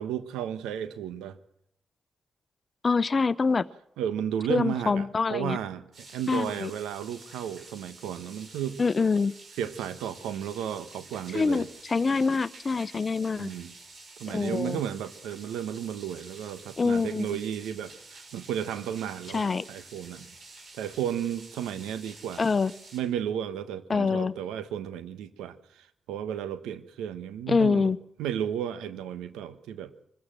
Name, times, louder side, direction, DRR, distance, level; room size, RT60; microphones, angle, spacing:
voice 1, 0.0-1.4 4.0-8.8 9.6-11.7 13.4-13.7 14.2-20.3 20.7-22.5 22.9-27.9 28.2-29.9, right 9 dB, 90° right, 1.2 m, -33 dB
voice 2, 2.8-3.6 4.5-5.6 6.3-6.7 8.8-9.3 11.3-13.5 14.3-14.8 16.8-17.3 19.3-19.6 22.4-22.7 23.9-24.3 27.5-28.0, left 4 dB, 45° left, 0.9 m, -25 dB
sound 1, 5.9-23.0, right 3 dB, 60° right, 6.9 m, -49 dB
24.5 x 15.0 x 7.7 m
supercardioid pair, 50°, 0 cm